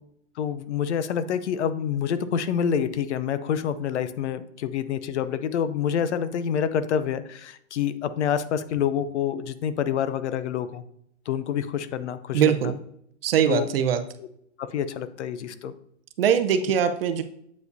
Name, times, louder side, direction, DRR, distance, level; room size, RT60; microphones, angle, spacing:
voice 1, 0.4-10.8 11.3-12.7 13.5-13.7 14.6-15.7, left 8 dB, 65° left, 13 dB, 0.6 m, -27 dB
voice 2, 12.3-12.7 13.2-14.0 16.2-17.2, right 8 dB, 50° right, 9 dB, 0.6 m, -21 dB
8.2 x 4.9 x 2.6 m, 0.71 s
hypercardioid pair, 165°, 38 cm